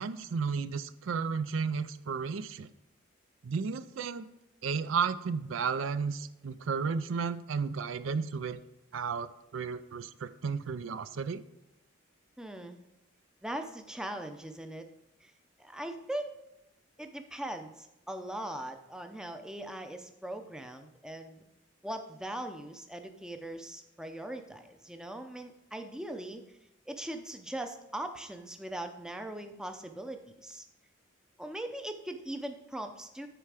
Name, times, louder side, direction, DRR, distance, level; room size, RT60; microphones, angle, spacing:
voice 1, 0.0-2.7 3.4-4.3 4.6-8.6 8.9-11.4, right 5 dB, 75° right, 13 dB, 0.4 m, -33 dB
voice 2, 12.4-12.8 13.4-14.8 15.2-15.3 15.6-16.3 17.0-21.4 21.8-26.4 26.9-30.6 31.4-33.3, right 1 dB, 5° right, 5 dB, 0.5 m, -40 dB
10.0 x 4.4 x 4.8 m, 0.92 s
head